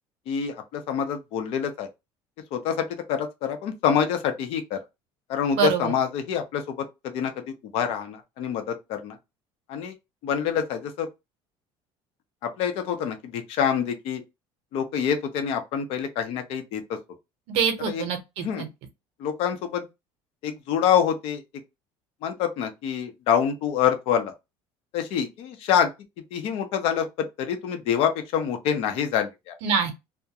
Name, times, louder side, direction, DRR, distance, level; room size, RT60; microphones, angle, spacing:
voice 1, 0.3-1.9 2.5-4.8 5.3-6.6 7.1-7.3 7.7-9.1 9.7-9.9 10.2-11.1 12.6-14.2 14.7-16.8 17.9-18.0 18.4-18.6 19.2-19.8 20.4-21.4 22.2-24.3 24.9-25.9 26.3-27.0 27.4-29.5, left 8 dB, 65° left, 0.6 m, -26 dB
voice 2, 5.5-5.9 17.5-18.7 29.6-29.9, right 7 dB, 70° right, 0.7 m, -25 dB
2.4 x 2.1 x 2.8 m
cardioid pair, 145°, 11 cm